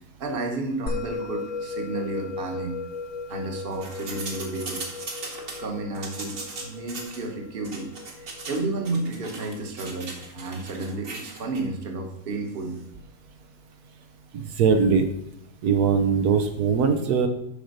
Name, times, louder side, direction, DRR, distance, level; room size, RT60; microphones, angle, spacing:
voice 1, 0.2-2.7 3.3-4.8 5.6-7.9 8.2-13.0, right 2 dB, 40° right, 3 dB, 1.2 m, -32 dB
Musical instrument, 0.9-11.5, left 4 dB, 60° left, 1.5 m, -37 dB
sound 1, 3.7-5.6 5.9-7.2 7.6-8.6 8.8-11.6, right 3 dB, 55° right, 1.8 m, -38 dB
voice 2, 14.3-15.1 15.6-17.3, right 6 dB, 80° right, 6 dB, 1.3 m, -21 dB
7.0 x 5.1 x 6.5 m, 0.78 s
omnidirectional pair, 1.7 m